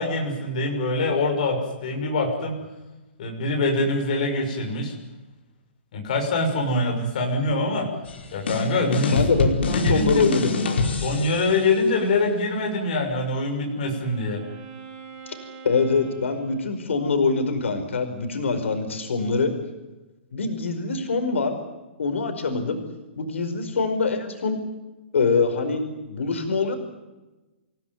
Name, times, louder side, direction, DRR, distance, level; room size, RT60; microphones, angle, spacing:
voice 1, 0.0-2.6 3.2-4.9 5.9-7.9 8.3-9.1 9.7-10.2 11.0-14.4, left 2 dB, 40° left, 2 dB, 6.3 m, -24 dB
sound 1, 8.1-11.6, left 3 dB, 60° left, 5.0 m, -25 dB
voice 2, 9.1-10.5 15.6-19.5 20.3-21.5 22.0-22.8 23.2-24.6 25.1-26.8, left 4 dB, 90° left, 6 dB, 5.0 m, -24 dB
Wind instrument woodwind instrument, 13.0-17.3, right 5 dB, 25° right, 3.4 m, -44 dB
28.0 x 17.0 x 9.4 m, 1.1 s
hypercardioid pair, 180°, 7 cm